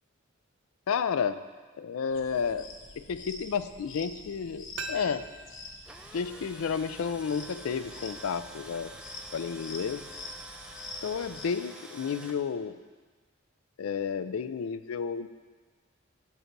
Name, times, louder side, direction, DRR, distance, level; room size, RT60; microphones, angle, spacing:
voice 1, 0.9-1.4 1.8-2.7 3.0-5.2 6.1-8.9 9.3-10.1 11.0-12.8 13.8-15.3, left 6 dB, 80° left, 13 dB, 0.4 m, -31 dB
sound 1, 2.1-11.4, left 3 dB, 60° left, 1.0 m, -46 dB
sound 2, 4.8-7.6 7.8-7.9, right 3 dB, 70° right, 0.6 m, -44 dB
Tools, 5.6-12.3, right 1 dB, 5° right, 0.4 m, -47 dB
9.1 x 6.5 x 4.6 m, 1.4 s
head